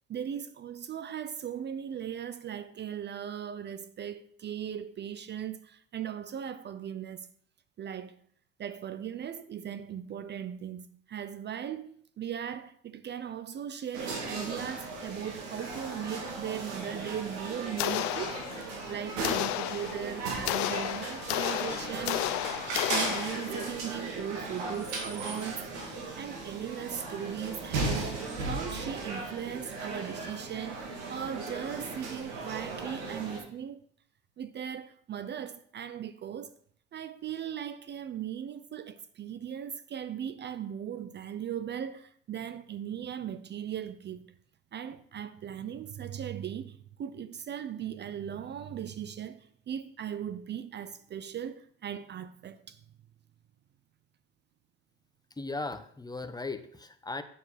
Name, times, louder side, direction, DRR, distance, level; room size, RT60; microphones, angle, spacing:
voice 1, 0.1-7.3 7.8-8.2 8.6-11.9 12.2-18.4 18.9-22.3 22.9-33.8 34.4-36.6 36.9-44.3 44.7-52.8, right 9 dB, 35° right, 0.5 m, -38 dB
sound 1, 13.9-33.4, right 3 dB, 80° right, 2.4 m, -37 dB
sound 2, 17.8-18.8 19.2-23.7, left 15 dB, 70° left, 0.5 m, -33 dB
voice 2, 55.4-57.2, left 3 dB, 15° left, 0.8 m, -37 dB
8.4 x 6.7 x 4.2 m
hypercardioid pair, 75°, 30 cm